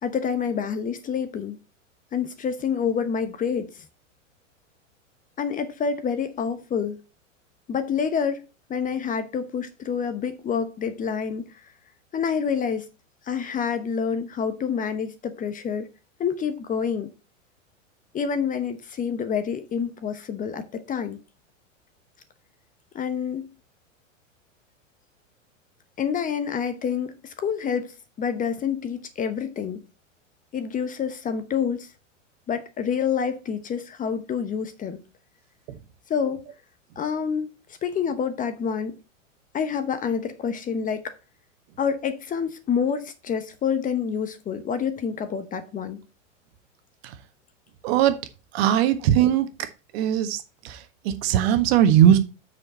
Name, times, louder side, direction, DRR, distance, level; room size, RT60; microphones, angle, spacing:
voice 1, 0.0-1.6 2.1-3.8 5.4-7.0 7.7-11.5 12.1-12.9 13.2-15.9 16.2-17.1 18.1-21.2 22.9-23.5 26.0-29.8 30.5-31.9 32.5-35.0 36.1-36.4 37.0-37.5 37.8-39.0 39.5-41.1 41.8-46.0, left 7 dB, 20° left, 0.9 m, -27 dB
voice 2, 47.8-48.2 48.5-49.7 49.9-52.2, right 10 dB, 50° right, 1.5 m, -20 dB
7.4 x 6.5 x 4.2 m
hypercardioid pair, 110°, 39 cm